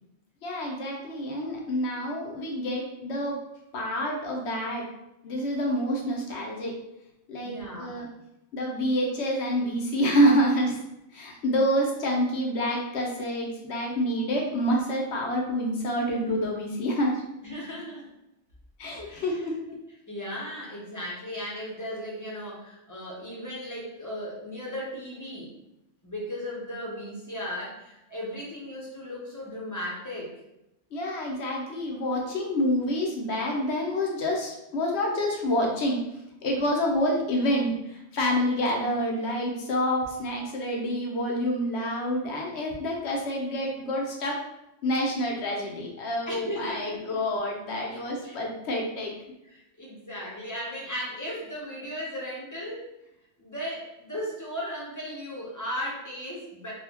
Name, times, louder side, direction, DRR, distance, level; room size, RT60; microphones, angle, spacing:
voice 1, 0.4-3.4 3.7-4.9 5.2-6.7 7.3-8.1 8.5-10.8 11.1-17.2 18.8-19.5 30.9-36.0 36.4-44.4 44.8-49.1, equal, 70° left, 0 dB, 1.0 m, -27 dB
voice 2, 7.4-8.1 14.2-14.3 17.4-18.1 19.0-19.8 20.1-25.5 26.0-30.3 46.3-47.2 47.9-48.4 49.4-52.9 53.4-56.7, equal, 20° left, -5 dB, 0.8 m, -36 dB
4.0 x 2.3 x 2.9 m, 0.88 s
omnidirectional pair, 1.2 m